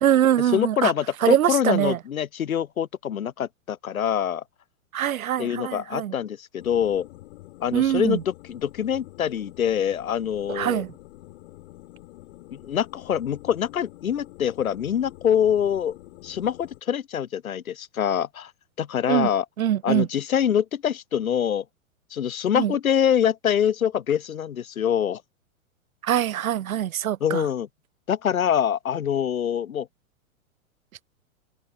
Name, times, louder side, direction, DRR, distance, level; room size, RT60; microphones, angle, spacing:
voice 1, 0.0-0.9 1.2-2.0 4.9-6.1 7.7-8.2 10.5-10.9 19.1-19.3 19.6-20.1 22.6-22.7 26.0-27.5, right 11 dB, 85° right, 0.7 m, -23 dB
voice 2, 0.5-4.4 5.4-7.1 7.6-8.2 8.4-10.8 12.5-16.0 16.2-18.5 18.8-19.4 19.8-21.6 22.1-25.2 27.2-27.7 28.1-29.9, left 9 dB, 85° left, 1.1 m, -25 dB
sound 1, 6.6-16.8, left 17 dB, 55° left, 1.2 m, -47 dB
hypercardioid pair, 110°, 41 cm